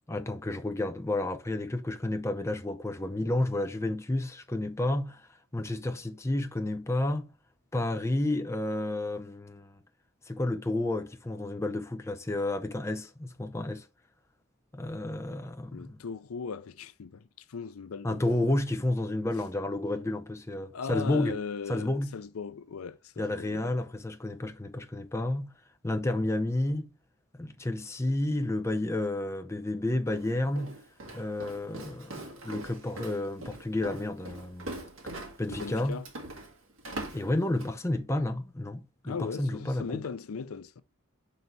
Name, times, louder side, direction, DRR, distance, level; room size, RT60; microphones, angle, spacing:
voice 1, 0.1-5.2 5.5-7.3 7.7-9.8 10.3-13.9 14.7-16.0 18.0-21.4 21.7-22.2 23.2-25.5 25.8-26.9 27.4-30.8 31.1-34.8 35.4-36.0 37.1-40.0, left 1 dB, 15° left, 0.5 m, -31 dB
voice 2, 15.7-18.2 20.7-23.7 35.5-36.1 39.1-40.8, left 5 dB, 90° left, 0.5 m, -38 dB
Walk footsteps, 30.1-37.8, right 2 dB, 65° right, 2.0 m, -42 dB
5.4 x 4.0 x 4.5 m
head